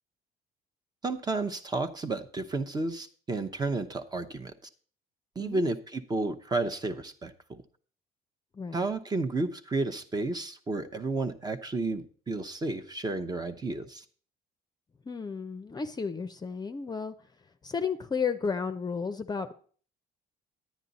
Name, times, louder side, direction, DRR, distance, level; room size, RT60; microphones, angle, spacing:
voice 1, 1.0-4.5 5.4-7.3 8.7-14.0, right 3 dB, 25° right, 7 dB, 0.8 m, -32 dB
voice 2, 8.5-8.9 15.1-17.1 17.6-19.5, left 5 dB, 25° left, 9 dB, 0.6 m, -33 dB
10.0 x 9.2 x 4.1 m, 0.43 s
cardioid pair, 110°, 17 cm